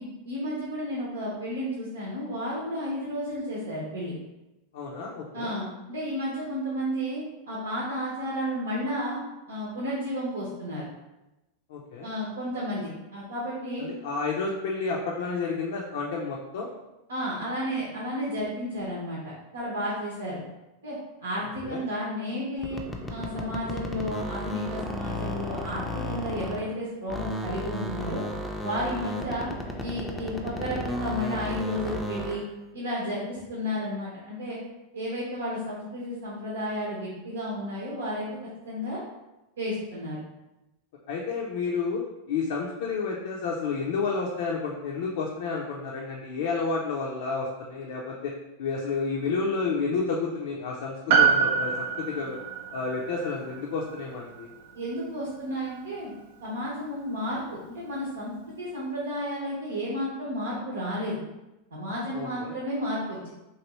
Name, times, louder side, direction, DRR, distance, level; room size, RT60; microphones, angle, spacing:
voice 1, 0.2-4.1 5.3-9.2 9.5-10.8 12.0-13.9 17.1-20.4 20.8-22.8 23.1-28.2 28.6-29.5 29.8-32.4 32.7-34.6 34.9-38.3 38.6-39.0 39.6-40.2 54.7-56.1 56.4-61.2 61.7-63.3, equal, 90° right, -6 dB, 0.8 m, -32 dB
voice 2, 4.7-5.5 11.7-12.1 13.8-16.7 21.6-21.8 41.1-48.3 48.6-52.4 52.7-54.5 62.1-62.6, left 4 dB, 70° left, -2 dB, 0.5 m, -30 dB
sound 1, 22.6-26.8 27.1-32.5, left 1 dB, 10° left, 0.4 m, -34 dB
Piano, 51.1-55.7 55.9-56.0, right 6 dB, 65° right, 0.4 m, -27 dB
3.1 x 2.5 x 3.0 m, 0.99 s
hypercardioid pair, 105°, 0 cm